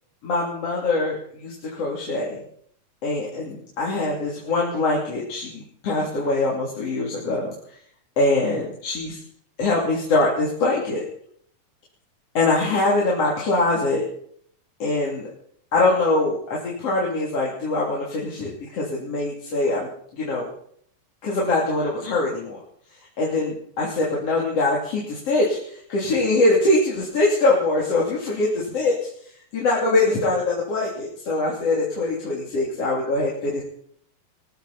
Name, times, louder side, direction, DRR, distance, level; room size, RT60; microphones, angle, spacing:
voice 1, 0.2-2.4 3.0-7.5 8.2-9.2 9.6-11.0 12.3-14.0 14.8-15.3 15.7-20.5 21.2-22.6 23.2-29.1 29.5-33.6, left 2 dB, 55° left, -4 dB, 4.0 m, -23 dB
20.0 x 15.0 x 4.3 m, 0.62 s
omnidirectional pair, 3.4 m